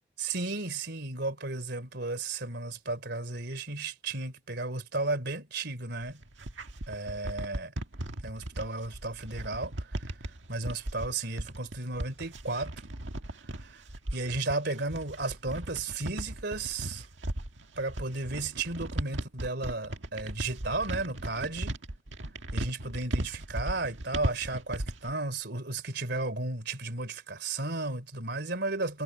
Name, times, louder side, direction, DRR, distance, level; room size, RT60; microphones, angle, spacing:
voice 1, 0.2-6.1 6.9-7.7 8.2-12.7 13.4-13.8 14.1-17.1 17.8-21.7 22.5-29.0, right 2 dB, 60° right, 3.4 m, -34 dB
sound 1, 6.0-25.1, right 1 dB, 75° right, 1.7 m, -37 dB
head